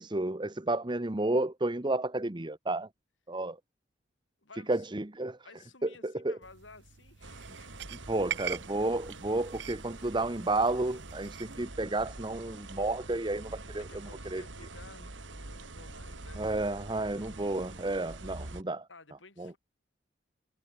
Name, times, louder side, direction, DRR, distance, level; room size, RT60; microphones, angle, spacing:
voice 1, 0.0-2.9 3.3-3.6 4.7-5.4 5.8-6.4 8.1-13.8 14.3-14.4 16.4-18.9 19.4-19.5, right 2 dB, 25° right, 1.0 m, -31 dB
voice 2, 4.4-4.9 5.4-8.0 13.8-16.5 18.9-19.6, left 3 dB, 85° left, 5.8 m, -55 dB
sound 1, 6.4-11.6, right 9 dB, 65° right, 0.9 m, -43 dB
sound 2, 7.2-18.6, right 2 dB, 80° right, 2.8 m, -45 dB
head